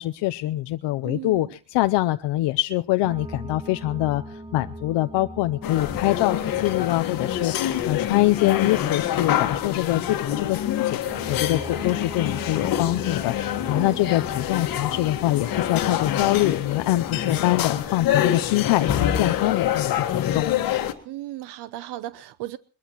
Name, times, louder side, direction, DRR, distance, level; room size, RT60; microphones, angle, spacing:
voice 1, 0.0-20.5, left 16 dB, 90° left, 0.7 m, -24 dB
voice 2, 1.0-1.5 13.7-14.1 21.0-22.6, right 15 dB, 75° right, 0.8 m, -36 dB
sound 1, 3.0-18.2, right 1 dB, 10° right, 0.8 m, -41 dB
sound 2, 5.6-20.9, left 10 dB, 55° left, 1.6 m, -26 dB
21.5 x 21.5 x 3.0 m
cardioid pair, 180°, 41 cm